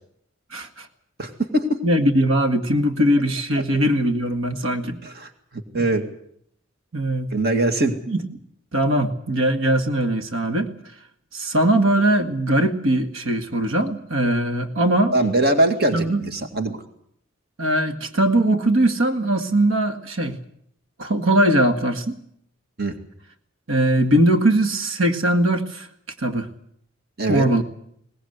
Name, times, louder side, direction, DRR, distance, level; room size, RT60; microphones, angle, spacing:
voice 1, 0.5-0.9 1.8-5.0 6.9-7.3 8.1-8.2 8.7-10.7 11.3-15.1 15.9-16.2 17.6-20.4 21.0-22.2 23.7-25.9 26.2-26.5 27.3-27.6, right 1 dB, 90° right, 6 dB, 1.9 m, -20 dB
voice 2, 1.2-1.8 3.6-3.7 5.0-6.0 7.3-7.9 15.1-16.8 22.8-23.0 27.2-27.5, right 1 dB, 50° right, 6 dB, 2.2 m, -22 dB
21.5 x 19.5 x 8.0 m, 0.71 s
head